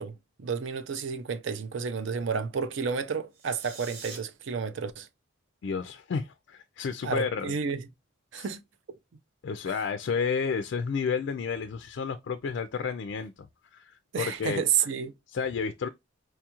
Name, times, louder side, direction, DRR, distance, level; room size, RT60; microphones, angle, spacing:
voice 1, 0.0-5.1 7.0-7.9 8.3-8.6 8.9-9.0 14.1-15.1, right 6 dB, 65° right, 0.5 m, -31 dB
sound 1, 3.3-4.2, right 4 dB, 85° right, 1.3 m, -44 dB
voice 2, 5.6-7.5 8.3-8.5 9.4-13.5 13.7-14.6 15.3-15.9, left 5 dB, 60° left, 0.3 m, -31 dB
4.5 x 2.4 x 2.8 m
head